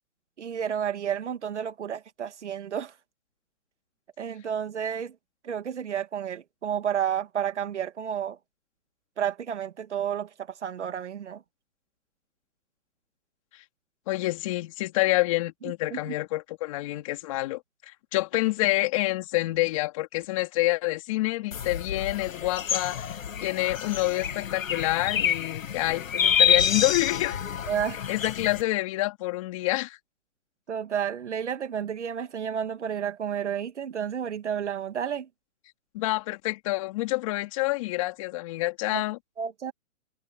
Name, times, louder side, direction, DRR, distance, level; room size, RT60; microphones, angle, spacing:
voice 1, 0.4-2.9 4.2-5.2 5.4-8.4 9.2-10.3 10.6-11.4 15.9-16.2 27.7-28.0 30.7-35.3 38.9-39.0 39.4-39.7, right 8 dB, 55° right, 2.0 m, -31 dB
voice 2, 14.1-23.1 23.4-27.4 28.1-30.0 35.9-39.2, left 19 dB, 25° left, 3.7 m, -27 dB
sound 1, 21.5-28.6, left 8 dB, 75° left, 1.5 m, -28 dB
hypercardioid pair, 170°, 41 cm